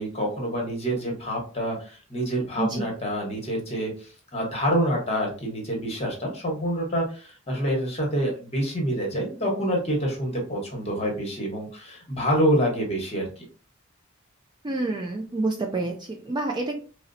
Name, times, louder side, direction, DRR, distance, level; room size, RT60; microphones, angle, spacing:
voice 1, 0.0-13.4, equal, 30° left, -1 dB, 1.1 m, -27 dB
voice 2, 14.6-16.8, right 2 dB, 20° right, 1 dB, 0.3 m, -28 dB
4.2 x 2.0 x 2.6 m, 0.38 s
head